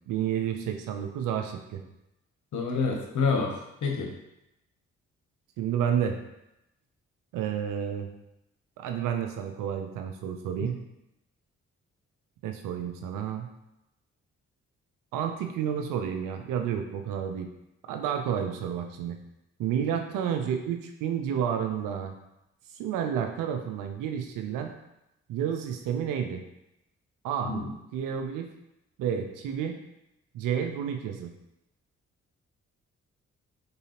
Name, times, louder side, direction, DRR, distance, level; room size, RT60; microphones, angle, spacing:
voice 1, 0.1-1.8 5.6-6.2 7.3-8.1 8.8-10.8 12.4-13.5 15.1-17.5 17.9-19.2 19.6-22.1 22.8-24.7 25.3-26.4 27.2-27.5 27.9-28.5 29.0-29.8 30.3-31.3, right 8 dB, 80° right, 5 dB, 0.5 m, -30 dB
voice 2, 2.5-3.5 3.8-4.1 10.6-10.7 27.4-27.7, left 4 dB, 65° left, 1 dB, 0.8 m, -27 dB
3.7 x 2.7 x 2.8 m, 0.87 s
hypercardioid pair, 40°, 32 cm